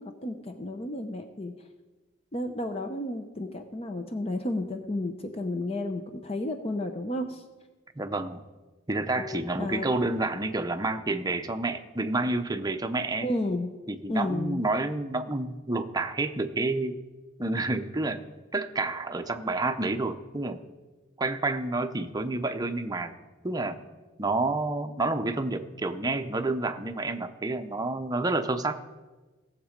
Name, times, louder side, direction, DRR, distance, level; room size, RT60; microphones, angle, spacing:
voice 1, 0.0-1.5 2.3-7.4 9.2-9.9 13.2-13.7 14.1-14.6, left 1 dB, 30° left, 6 dB, 0.7 m, -32 dB
voice 2, 8.0-8.4 8.9-13.3 13.9-17.0 17.4-18.2 18.5-20.6 21.2-23.1 23.4-23.8 24.2-28.8, right 2 dB, 20° right, 8 dB, 0.7 m, -29 dB
17.5 x 7.4 x 5.1 m, 1.2 s
head